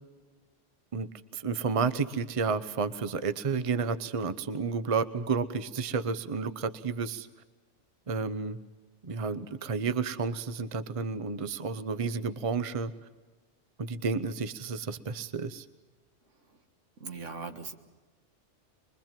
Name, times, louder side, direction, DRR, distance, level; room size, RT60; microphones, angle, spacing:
voice 1, 0.9-7.3 8.1-8.6 9.0-12.9 13.8-15.6, right 5 dB, 30° right, 13 dB, 0.8 m, -31 dB
voice 2, 17.0-17.8, right 4 dB, 85° right, 6 dB, 2.0 m, -39 dB
24.5 x 22.0 x 7.5 m, 1.3 s
omnidirectional pair, 1.2 m